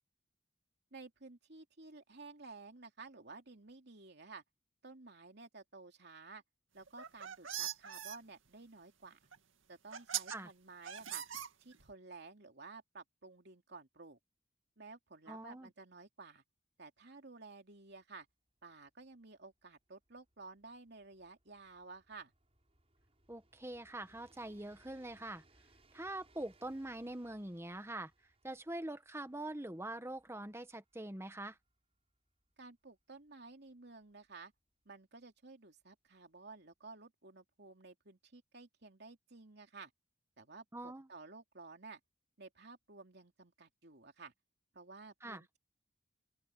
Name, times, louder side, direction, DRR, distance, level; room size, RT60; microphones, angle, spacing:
voice 1, 0.9-4.4 4.8-6.4 6.7-9.2 9.7-11.2 11.6-14.2 14.8-16.4 16.8-18.3 18.6-22.3 32.6-34.5 34.8-39.9 40.4-42.0 42.4-44.3 44.7-45.6, right 3 dB, 55° right, 3.0 m, -53 dB
sound 1, 6.9-8.2 9.3-9.4 9.9-10.4 10.9-11.9, right 10 dB, 80° right, 2.2 m, -41 dB
voice 2, 15.3-15.7 23.3-25.4 25.9-28.1 28.4-31.6 40.7-41.1 45.2-45.4, right 1 dB, 15° right, 1.3 m, -44 dB
Train, 18.2-34.8 35.8-35.9, right 2 dB, 30° right, 7.3 m, -71 dB
open air
head